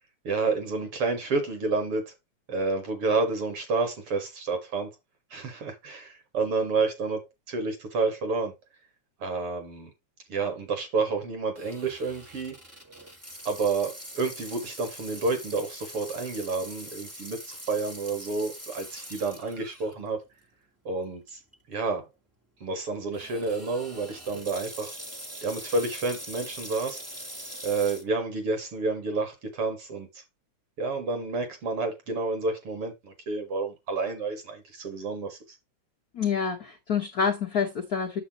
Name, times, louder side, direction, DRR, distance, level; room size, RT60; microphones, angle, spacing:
voice 1, 0.2-2.1 2.5-4.9 5.3-8.5 9.2-9.9 10.3-12.6 13.5-20.2 20.8-21.4 21.7-22.1 22.6-24.9 25.4-27.0 27.6-30.2 30.8-35.4, right 3 dB, 50° right, 2.4 m, -29 dB
Water tap faucet / Sink (filling or washing), 11.5-19.9 20.4-20.5 21.3-21.5 23.1-28.0, equal, 15° right, 0.5 m, -43 dB
voice 2, 36.1-38.2, left 6 dB, 65° left, 0.9 m, -27 dB
8.2 x 7.1 x 3.0 m
omnidirectional pair, 3.4 m